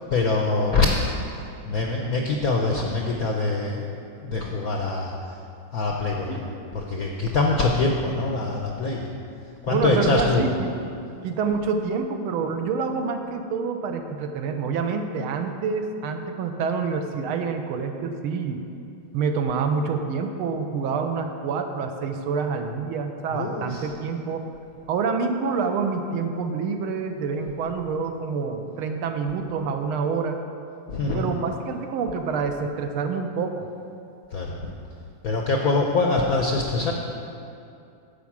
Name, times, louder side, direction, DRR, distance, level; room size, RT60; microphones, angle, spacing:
voice 1, 0.1-5.1 5.7-9.1 9.6-10.5 23.3-23.9 30.9-31.3 34.3-34.7 35.2-36.9, left 3 dB, 70° left, 0 dB, 0.8 m, -24 dB
voice 2, 9.7-10.7 11.2-18.6 19.1-24.5 24.9-30.4 31.1-33.7, right 5 dB, 80° right, 5 dB, 1.5 m, -27 dB
10.5 x 5.1 x 7.2 m, 2.6 s
omnidirectional pair, 2.4 m